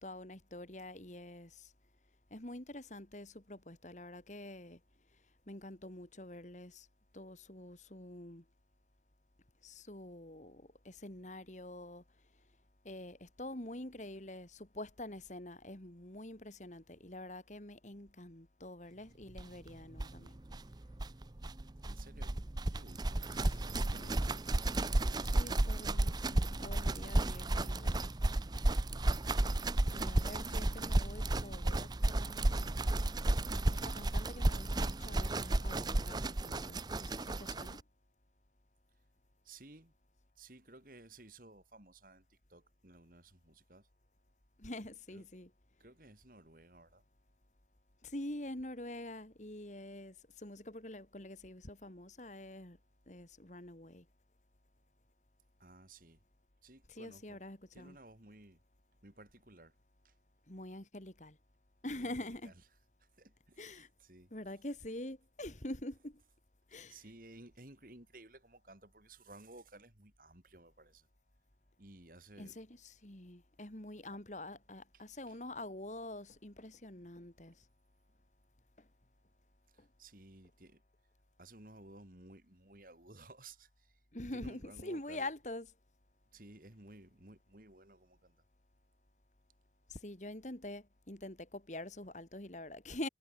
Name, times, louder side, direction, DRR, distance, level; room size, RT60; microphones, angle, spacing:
voice 1, 0.0-1.7 2.3-4.8 5.5-6.9 7.1-8.4 9.6-12.0 12.8-20.3 23.3-23.5 23.9-24.3 25.2-28.1 29.9-32.8 33.7-37.8 44.6-45.5 48.0-52.8 53.1-54.1 56.9-58.0 60.5-61.4 61.8-62.5 63.6-63.9 64.3-66.2 66.7-67.0 72.4-77.6 78.8-78.9 79.8-79.9 84.1-85.7 89.9-93.1, left 1 dB, 45° left, 2.6 m, -46 dB
sound 1, 19.4-19.5 19.7-19.8 19.9-37.8, right 2 dB, 25° right, 0.6 m, -33 dB
voice 2, 21.8-22.4 22.7-24.4 30.4-30.5 39.4-39.9 40.4-43.9 45.1-45.3 45.8-47.0 55.6-56.2 56.6-57.4 57.7-58.6 59.0-59.7 60.0-60.1 61.9-62.5 63.0-64.3 66.9-71.1 71.8-72.6 74.1-74.2 74.9-75.4 79.7-80.8 81.4-85.3 86.3-88.4, right 2 dB, 50° right, 3.4 m, -57 dB
head